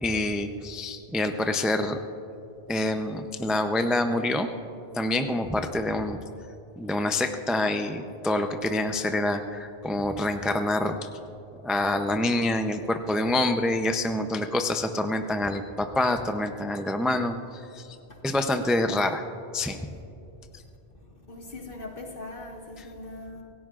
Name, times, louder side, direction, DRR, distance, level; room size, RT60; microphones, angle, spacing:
voice 1, 0.0-2.0 2.7-4.5 4.9-6.2 6.8-11.1 11.6-18.0 18.2-19.2 19.5-19.8 20.5-20.6 22.8-22.9, left 1 dB, ahead, 6 dB, 0.4 m, -26 dB
voice 2, 21.3-23.4, left 2 dB, 50° left, 0 dB, 1.9 m, -40 dB
26.5 x 17.0 x 2.5 m, 2.8 s
omnidirectional pair, 1.1 m